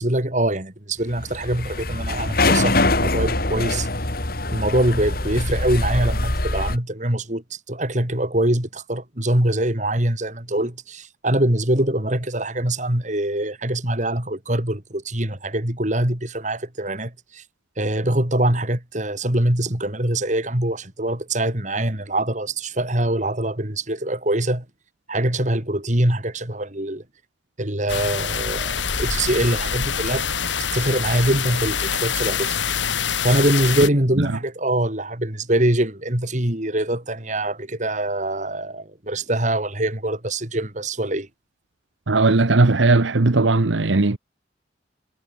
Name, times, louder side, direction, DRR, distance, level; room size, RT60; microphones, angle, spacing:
voice 1, 0.0-3.9 4.5-17.4 17.8-24.6 25.1-27.0 27.6-30.3 30.7-32.6 33.2-41.3, right 1 dB, 40° right, 3.7 m, -23 dB
sound 1, 1.1-6.8, left 2 dB, 55° left, 3.2 m, -23 dB
sound 2, 27.9-33.9, left 7 dB, 85° left, 2.4 m, -25 dB
voice 2, 42.1-44.2, right 3 dB, 85° right, 1.1 m, -17 dB
head